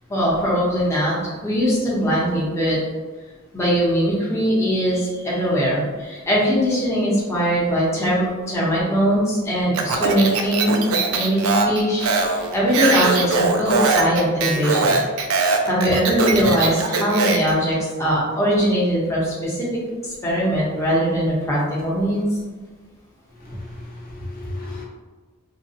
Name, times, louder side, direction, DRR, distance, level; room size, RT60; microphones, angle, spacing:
voice 1, 0.1-2.8 3.5-15.0 15.6-19.7 20.0-22.2, equal, 15° left, -7 dB, 0.9 m, -21 dB
Speech, 9.7-17.5, right 4 dB, 80° right, 0.4 m, -21 dB
voice 2, 23.4-24.8, left 1 dB, 45° left, -4 dB, 0.8 m, -34 dB
3.7 x 2.3 x 2.8 m, 1.3 s
head